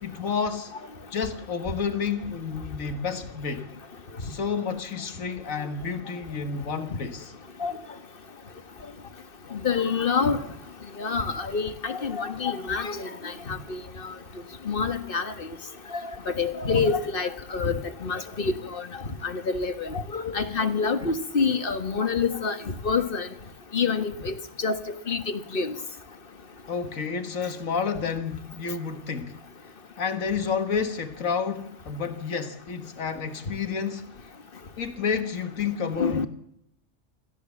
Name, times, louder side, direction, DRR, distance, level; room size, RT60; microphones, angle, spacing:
voice 1, 0.0-0.7 1.1-3.7 4.2-7.3 26.7-29.4 30.0-34.3 34.8-36.3, left 6 dB, 85° left, 1.9 m, -30 dB
voice 2, 9.5-10.4 11.0-14.1 14.7-15.3 15.9-18.9 19.2-22.6 22.8-23.3 23.7-24.8 25.1-25.7 36.0-36.3, left 5 dB, 45° left, 1.7 m, -27 dB
27.5 x 13.5 x 7.2 m
omnidirectional pair, 1.4 m